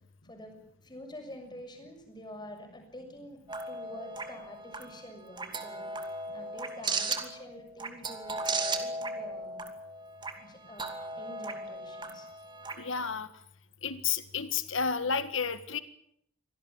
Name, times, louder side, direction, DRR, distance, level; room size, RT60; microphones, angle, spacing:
voice 1, 0.2-3.4 3.7-9.7 10.4-12.3, left 1 dB, 20° left, 4 dB, 6.7 m, -47 dB
sound 1, 3.5-13.1, right 3 dB, 25° right, 2.6 m, -37 dB
voice 2, 12.8-13.3 13.8-15.8, left 6 dB, 70° left, 12 dB, 1.7 m, -31 dB
25.5 x 18.0 x 8.9 m, 0.71 s
head